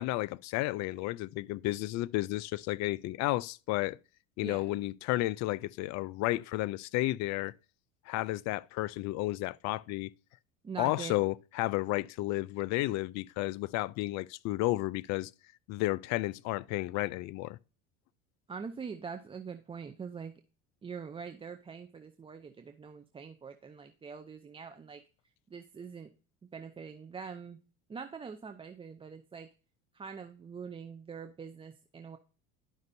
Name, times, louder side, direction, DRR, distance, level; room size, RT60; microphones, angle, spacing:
voice 1, 0.0-4.0 4.4-7.5 8.1-10.1 10.8-15.3 15.7-17.6, left 18 dB, 50° left, 0.4 m, -32 dB
voice 2, 10.6-11.2 18.5-20.3 20.8-25.0 25.5-26.1 26.5-27.6 27.9-29.5 29.9-32.2, right 6 dB, 15° right, 0.5 m, -43 dB
11.5 x 5.2 x 2.6 m
supercardioid pair, 110°, 36 cm